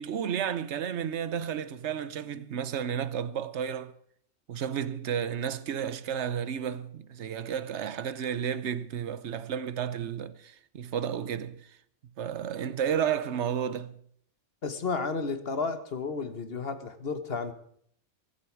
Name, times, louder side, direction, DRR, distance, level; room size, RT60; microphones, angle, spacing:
voice 1, 0.0-4.0 4.5-11.7 12.2-14.0, right 8 dB, 70° right, 1.1 m, -32 dB
voice 2, 14.6-17.5, left 4 dB, 55° left, 1.5 m, -32 dB
22.5 x 11.5 x 4.8 m
omnidirectional pair, 1.3 m